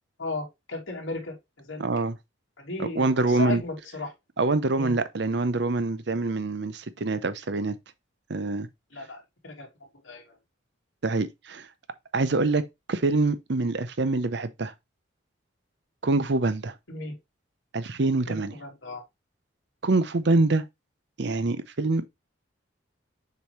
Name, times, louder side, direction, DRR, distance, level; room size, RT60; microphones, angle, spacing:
voice 1, 0.2-1.9 2.6-4.1 4.7-5.0 8.9-9.7 10.0-10.4 16.9-17.1 18.3-19.0, left 2 dB, 80° left, 2.8 m, -35 dB
voice 2, 1.8-2.1 2.8-3.6 4.4-7.8 8.3-8.7 11.0-11.7 12.1-14.7 16.0-16.7 17.7-18.6 19.8-20.7 21.2-22.1, right 3 dB, 60° right, 0.7 m, -25 dB
6.8 x 4.7 x 3.1 m
head